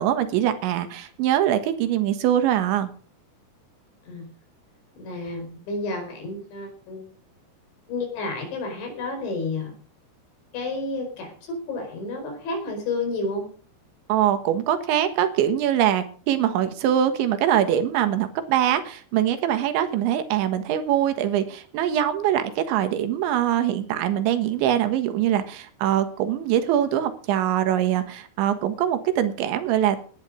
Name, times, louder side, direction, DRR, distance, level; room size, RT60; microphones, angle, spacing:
voice 1, 0.0-2.9 14.1-30.0, right 11 dB, 90° right, 9 dB, 3.8 m, -23 dB
voice 2, 5.0-7.1 7.9-9.8 10.5-13.5, left 3 dB, 85° left, 4 dB, 7.2 m, -31 dB
18.0 x 10.5 x 5.0 m, 0.43 s
omnidirectional pair, 5.1 m